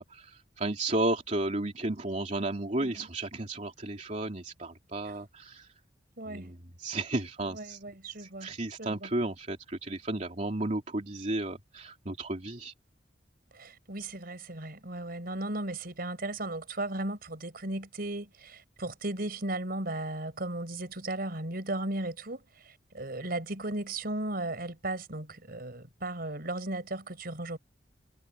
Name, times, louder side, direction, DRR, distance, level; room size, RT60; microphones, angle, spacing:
voice 1, 0.0-5.7 6.3-7.8 8.2-12.7, right 2 dB, 45° right, 2.9 m, -33 dB
voice 2, 2.7-3.1 5.0-5.2 6.2-6.5 7.5-8.5 8.8-9.1 13.5-27.6, right 2 dB, 60° right, 4.8 m, -36 dB
head